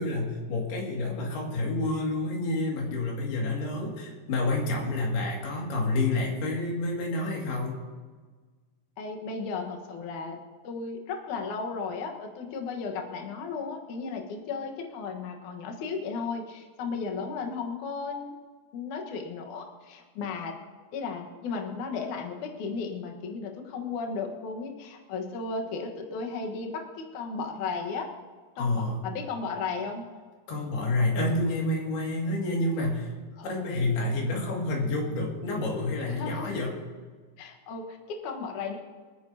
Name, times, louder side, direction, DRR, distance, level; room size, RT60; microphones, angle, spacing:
voice 1, 0.0-7.8 28.6-29.0 30.5-33.1 33.4-36.7, left 2 dB, 60° left, -2 dB, 3.9 m, -29 dB
voice 2, 9.0-10.4 10.6-18.3 18.7-20.6 20.9-28.1 28.6-30.0 33.4-33.5 36.1-36.5 37.4-38.8, left 4 dB, 85° left, 3 dB, 1.7 m, -35 dB
26.5 x 9.7 x 2.8 m, 1.4 s
omnidirectional pair, 5.7 m